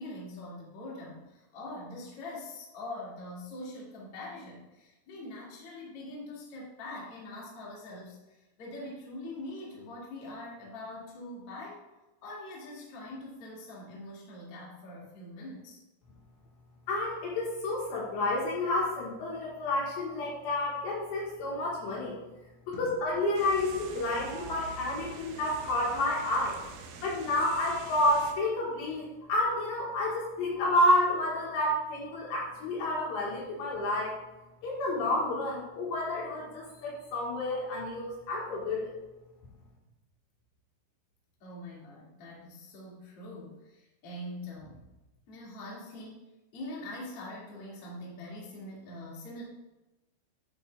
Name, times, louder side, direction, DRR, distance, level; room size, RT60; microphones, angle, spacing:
voice 1, 0.0-11.8 12.2-15.8 22.7-22.9 41.4-44.9 45.3-46.2 46.5-49.4, left 1 dB, 40° left, -5 dB, 2.3 m, -43 dB
voice 2, 16.9-22.2 22.7-26.6 27.0-34.1 34.6-38.9, left 1 dB, 65° left, -4 dB, 3.3 m, -30 dB
sound 1, 23.4-28.3, right 5 dB, 90° right, 2.1 m, -45 dB
10.5 x 8.2 x 2.4 m, 1.0 s
omnidirectional pair, 5.7 m